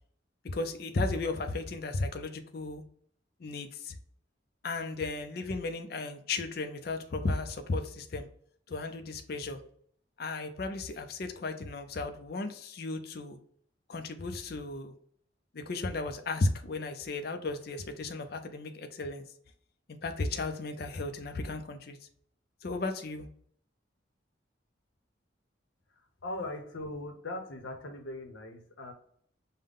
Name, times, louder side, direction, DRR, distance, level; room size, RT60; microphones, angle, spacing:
voice 1, 0.5-2.8 3.4-3.9 4.6-8.3 8.7-9.6 10.2-13.4 13.9-15.0 15.5-19.2 19.9-22.0 22.6-23.3, left 3 dB, 50° left, 7 dB, 0.4 m, -35 dB
voice 2, 25.9-28.9, left 2 dB, 85° left, 5 dB, 0.8 m, -40 dB
5.3 x 2.2 x 3.6 m, 0.62 s
head